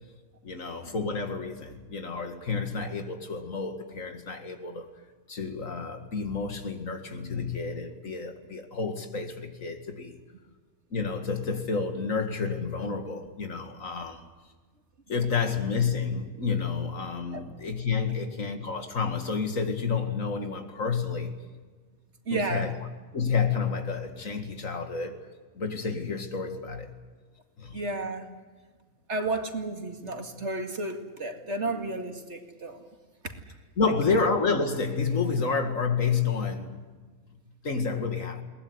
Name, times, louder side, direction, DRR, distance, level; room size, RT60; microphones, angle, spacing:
voice 1, 0.4-4.9 5.3-10.2 10.9-14.3 15.1-21.3 22.3-22.8 23.1-25.2 25.5-26.9 27.6-27.8 31.7-31.8 33.8-36.8 37.6-38.4, left 5 dB, 70° left, 2.5 m, -30 dB
voice 2, 22.3-22.7 27.7-28.3 29.1-32.9 33.2-33.3, right 2 dB, 55° right, 2.5 m, -32 dB
21.5 x 19.5 x 9.7 m
omnidirectional pair, 1.4 m